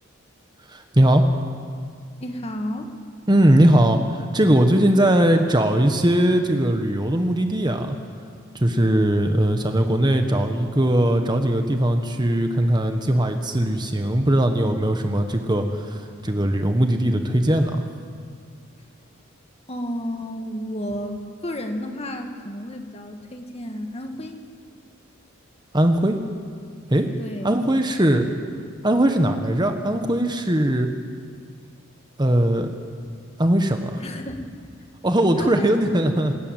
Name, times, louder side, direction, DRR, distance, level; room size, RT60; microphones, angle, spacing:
voice 1, 0.7-1.3 3.3-8.0 8.5-17.8 25.7-26.2 26.9-27.1 27.4-28.2 28.8-30.9 32.2-32.7 33.4-34.0 35.0-36.3, right 1 dB, 20° right, 5 dB, 1.3 m, -20 dB
voice 2, 2.2-2.9 18.8-18.9 19.7-24.4 27.2-27.6 34.0-34.5 35.4-35.7, equal, 30° left, 5 dB, 1.8 m, -32 dB
27.0 x 14.0 x 9.0 m, 2.1 s
head